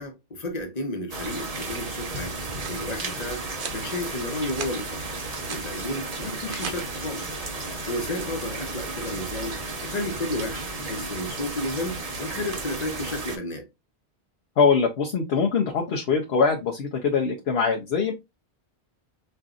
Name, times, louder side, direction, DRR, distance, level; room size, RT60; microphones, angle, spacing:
voice 1, 0.0-2.4 2.7-5.1 5.5-7.3 7.6-13.6, left 1 dB, 40° left, 1.0 m, -32 dB
sound 1, 1.1-13.4, right 3 dB, 40° right, 0.9 m, -34 dB
sound 2, 2.5-2.8 3.5-3.8 4.3-4.7 5.1-5.7 6.3-6.8, right 7 dB, 85° right, 1.0 m, -38 dB
voice 2, 14.6-18.1, left 5 dB, 70° left, 0.9 m, -23 dB
5.3 x 2.6 x 2.4 m
omnidirectional pair, 1.1 m